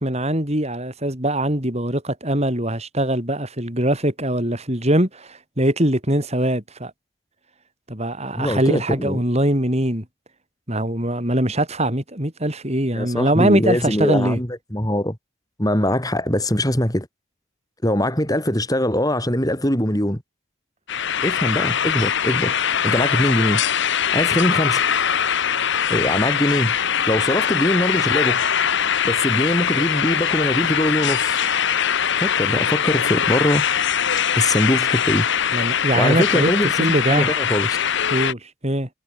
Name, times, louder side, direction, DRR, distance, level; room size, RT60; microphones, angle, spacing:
voice 1, 0.0-6.9 7.9-10.0 10.7-14.4 35.5-36.5 36.8-37.3 38.1-38.9, right 1 dB, 30° right, 4.5 m, -22 dB
voice 2, 8.4-9.2 12.9-15.2 15.6-17.1 17.8-20.2 21.2-22.6 22.8-23.6 24.1-24.8 25.9-26.7 27.1-28.5 29.0-31.4 32.2-33.6 34.3-35.3 36.0-36.7 37.1-37.8, left 1 dB, 15° left, 4.8 m, -22 dB
sound 1, 20.9-38.3, left 8 dB, 55° left, 1.2 m, -22 dB
head